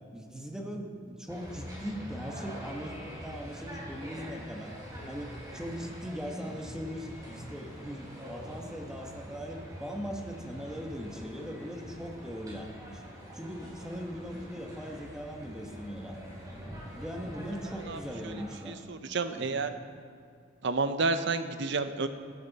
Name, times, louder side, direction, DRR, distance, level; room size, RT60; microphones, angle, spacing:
voice 1, 0.1-4.7 5.1-13.0 13.3-16.2 16.9-18.8 19.3-19.6, equal, 5° right, 1 dB, 1.3 m, -40 dB
sound 1, 1.3-18.6, equal, 20° right, 3.9 m, -45 dB
voice 2, 17.9-18.3 18.7-19.7 20.6-22.1, right 3 dB, 65° right, 9 dB, 0.8 m, -30 dB
14.5 x 14.0 x 4.2 m, 2.2 s
head